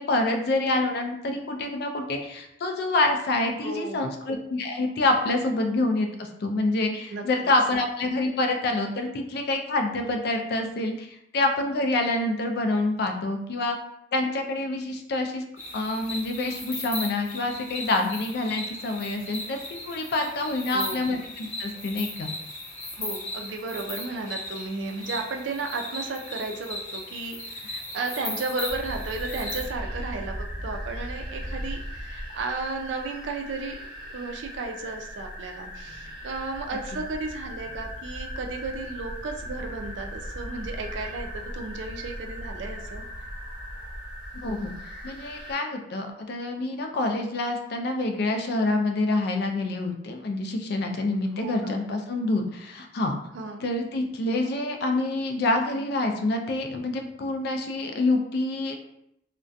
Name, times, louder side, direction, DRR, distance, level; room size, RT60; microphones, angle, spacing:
voice 1, 0.0-13.8 14.1-15.5 15.7-22.3 44.4-44.7 45.0-53.1 53.6-58.8, left 2 dB, 60° left, 4 dB, 0.4 m, -27 dB
voice 2, 3.6-4.0 7.1-7.2 20.7-21.2 22.9-43.0 51.4-51.8 53.3-53.6, right 3 dB, 75° right, 3 dB, 0.4 m, -34 dB
sound 1, 15.6-29.6, left 1 dB, 40° left, 0.7 m, -37 dB
sound 2, 28.7-45.5, equal, 25° right, 0.9 m, -38 dB
2.3 x 2.1 x 2.5 m, 0.78 s
head